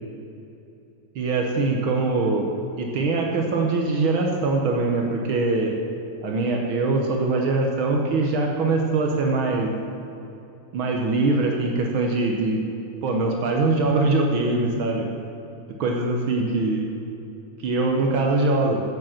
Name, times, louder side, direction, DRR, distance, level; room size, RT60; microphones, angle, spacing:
voice 1, 1.1-5.8 6.2-9.7 10.7-12.6 13.0-15.1 15.8-16.9 17.6-18.8, right 3 dB, 80° right, 1 dB, 1.1 m, -22 dB
8.7 x 7.8 x 7.3 m, 2.8 s
omnidirectional pair, 3.6 m